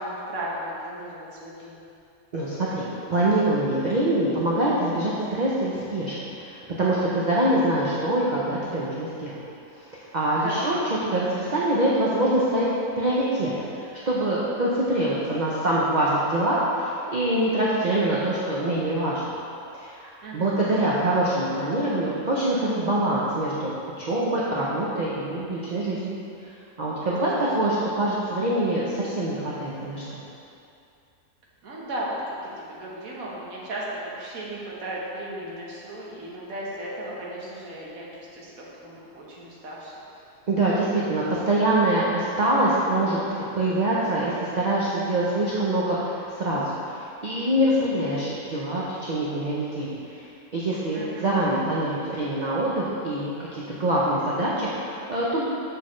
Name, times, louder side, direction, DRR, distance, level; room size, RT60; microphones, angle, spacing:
voice 1, 0.0-1.8 10.3-10.6 20.2-20.6 27.0-27.4 31.6-32.2 32.4-39.9 50.9-51.3, right 1 dB, 65° right, -5 dB, 1.6 m, -36 dB
voice 2, 2.3-6.1 6.4-9.4 10.1-10.8 11.1-12.7 13.0-19.3 19.7-26.2 26.8-30.2 40.5-43.2 43.5-46.9 47.2-50.2 50.5-55.4, right 1 dB, 45° right, -7 dB, 0.5 m, -24 dB
6.6 x 6.3 x 3.1 m, 2.6 s
omnidirectional pair, 1.7 m